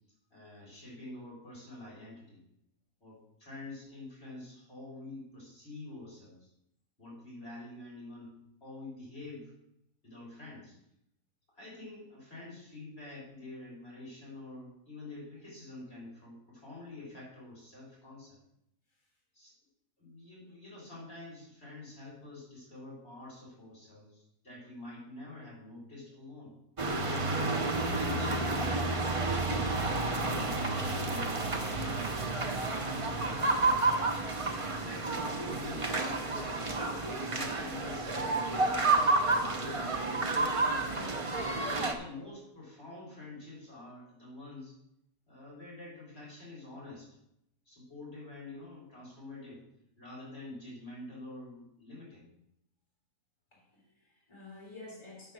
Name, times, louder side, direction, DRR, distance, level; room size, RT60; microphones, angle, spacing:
voice 1, 0.3-2.4 3.0-6.5 7.0-8.3 8.6-9.5 10.0-10.8 11.5-18.4 19.3-19.5 20.0-26.6 27.4-28.9 29.2-32.2 33.1-33.8 34.1-36.7 37.0-39.6 40.7-44.7 45.3-47.1 47.7-49.6 50.0-52.3, left 2 dB, 40° left, -5 dB, 4.0 m, -47 dB
sound 1, 26.8-41.9, right 3 dB, 35° right, 0.5 m, -30 dB
voice 2, 53.5-55.3, left 2 dB, 15° left, -6 dB, 3.3 m, -50 dB
7.6 x 6.9 x 6.2 m, 0.80 s
omnidirectional pair, 1.6 m